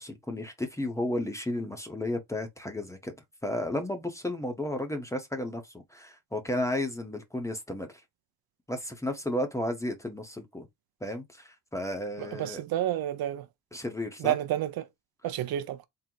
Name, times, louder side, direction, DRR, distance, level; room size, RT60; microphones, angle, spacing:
voice 1, 0.0-3.1 3.4-7.9 8.7-10.7 11.0-12.6 13.7-14.3, left 1 dB, 10° left, 0.7 m, -33 dB
voice 2, 12.2-13.5 14.2-14.9 15.2-15.8, right 12 dB, 65° right, 0.6 m, -30 dB
3.8 x 2.0 x 4.3 m
cardioid pair, 155°, 39 cm